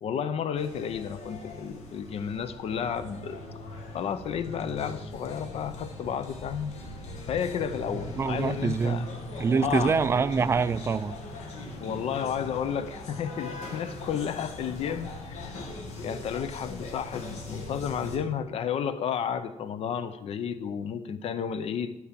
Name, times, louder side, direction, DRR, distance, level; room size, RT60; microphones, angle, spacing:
voice 1, 0.0-3.4 3.9-6.7 7.3-9.1 9.6-10.0 11.8-15.5 16.0-22.0, left 8 dB, 60° left, 12 dB, 0.6 m, -32 dB
sound 1, 0.6-18.2, left 2 dB, 80° left, 1.8 m, -40 dB
voice 2, 8.1-9.1 9.4-11.2, right 5 dB, 25° right, 13 dB, 0.3 m, -25 dB
12.5 x 4.6 x 7.4 m, 0.95 s
cardioid pair, 170°, 12 cm